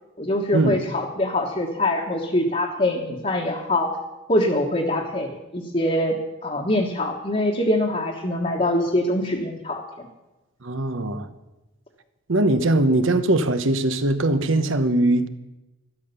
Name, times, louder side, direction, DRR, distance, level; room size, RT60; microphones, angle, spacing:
voice 1, 0.2-3.9 4.3-6.1 6.4-10.1, left 1 dB, 30° left, 1.4 m, -24 dB
voice 2, 10.6-11.3 12.3-15.3, right 2 dB, 70° right, 1.0 m, -21 dB
12.5 x 12.5 x 6.8 m
head